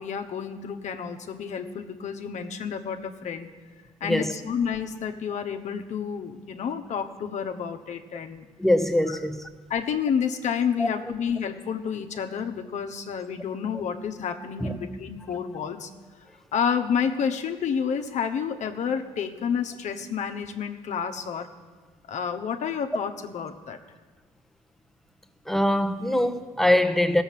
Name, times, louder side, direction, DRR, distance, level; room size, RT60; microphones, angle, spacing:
voice 1, 0.0-3.5 4.0-8.4 9.1-9.2 9.7-15.9 16.5-21.5 22.1-23.8, left 7 dB, 60° left, 1.1 m, -30 dB
voice 2, 4.0-4.3 8.6-9.5 10.8-10.9 14.6-14.8 20.0-20.1 25.5-27.2, left 1 dB, ahead, 1.0 m, -23 dB
16.0 x 7.2 x 7.5 m
supercardioid pair, 65°, 14 cm